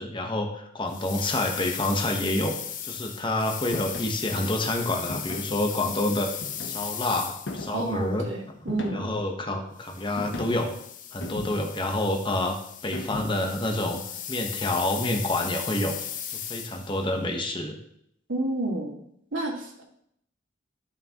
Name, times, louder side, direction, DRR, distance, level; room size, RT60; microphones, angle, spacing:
voice 1, 0.0-2.6 2.8-6.3 6.6-8.2 8.9-10.7 11.1-12.6 12.8-14.0 14.3-16.0 16.3-17.7, left 1 dB, 25° left, 3 dB, 1.1 m, -28 dB
sound 1, 0.9-7.9 9.8-17.0, left 9 dB, 45° left, 0.7 m, -37 dB
sound 2, 3.7-4.2 5.1-5.6 6.4-7.0 7.5-7.9 8.7-9.2 10.2-10.7 11.2-11.8 12.9-13.5, left 2 dB, 65° left, 1.0 m, -37 dB
voice 2, 7.7-9.0 18.3-18.9 19.3-19.8, right 2 dB, 80° right, -2 dB, 2.1 m, -30 dB
12.0 x 5.7 x 3.0 m, 0.72 s
head